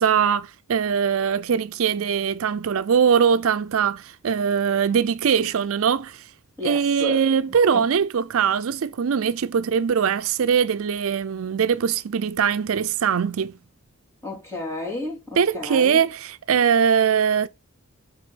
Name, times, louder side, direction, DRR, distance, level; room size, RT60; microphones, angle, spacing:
voice 1, 0.0-6.2 6.6-13.5 15.4-17.5, right 7 dB, 70° right, 0.4 m, -21 dB
voice 2, 6.6-7.2 7.7-7.9 14.2-16.0, left 2 dB, 10° left, 2.8 m, -32 dB
6.1 x 4.7 x 6.1 m
head